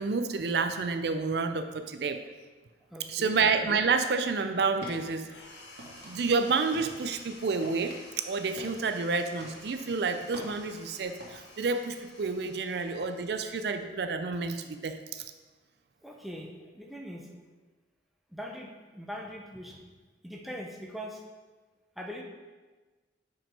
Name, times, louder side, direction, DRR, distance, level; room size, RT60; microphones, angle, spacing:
voice 1, 0.0-2.2 3.1-5.3 6.0-15.2, right 4 dB, 65° right, 8 dB, 0.4 m, -29 dB
voice 2, 2.9-3.4 16.0-17.4 18.3-19.8 20.2-21.2 22.0-22.2, equal, ahead, 0 dB, 0.7 m, -41 dB
sound 1, 4.6-11.3, right 1 dB, 85° right, 1.9 m, -48 dB
sound 2, 5.3-14.1, left 2 dB, 85° left, 1.4 m, -52 dB
5.8 x 5.3 x 5.4 m, 1.3 s
head